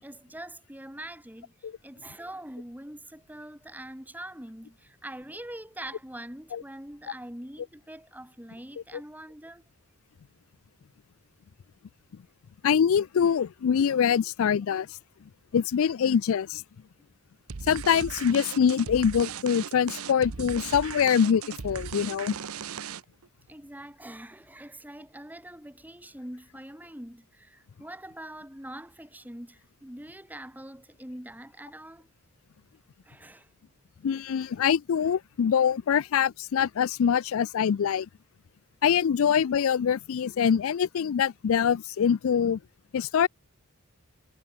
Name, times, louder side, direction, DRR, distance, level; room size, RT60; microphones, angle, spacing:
voice 1, 0.0-9.6 23.5-32.1 33.0-33.5, right 1 dB, 10° right, 2.9 m, -43 dB
voice 2, 12.6-15.0 15.5-16.6 17.6-22.4 34.0-38.1 38.8-42.6 42.9-43.3, left 7 dB, 65° left, 0.4 m, -24 dB
sound 1, 17.5-23.3, right 6 dB, 75° right, 0.8 m, -38 dB
head